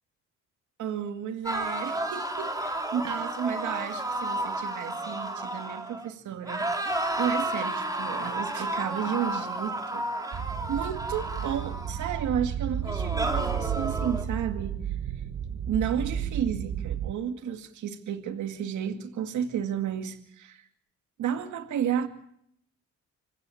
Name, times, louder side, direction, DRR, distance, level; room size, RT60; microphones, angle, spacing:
voice 1, 0.8-10.1 10.3-10.4 10.7-14.8 15.7-20.7 21.2-22.1, right 8 dB, 75° right, 7 dB, 2.2 m, -32 dB
sound 1, 1.4-6.1 6.4-12.3 12.8-14.2, right 1 dB, 10° right, 3.2 m, -32 dB
sound 2, 10.3-17.1, right 9 dB, 45° right, 1.0 m, -32 dB
26.0 x 15.5 x 7.1 m, 0.71 s
cardioid pair, 90°, 30 cm